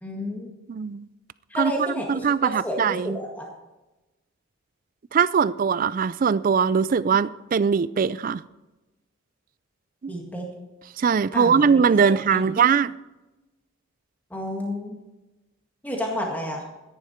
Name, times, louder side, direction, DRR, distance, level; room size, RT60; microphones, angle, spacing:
voice 1, 0.0-0.5 1.5-3.5 10.1-10.5 11.3-11.7 12.0-12.4 14.3-15.0 15.8-16.6, left 1 dB, 10° left, 1.8 m, -31 dB
voice 2, 0.7-1.1 1.6-3.2 5.1-8.4 10.0-10.1 11.0-12.9, right 6 dB, 40° right, 0.3 m, -21 dB
13.5 x 10.5 x 4.4 m
head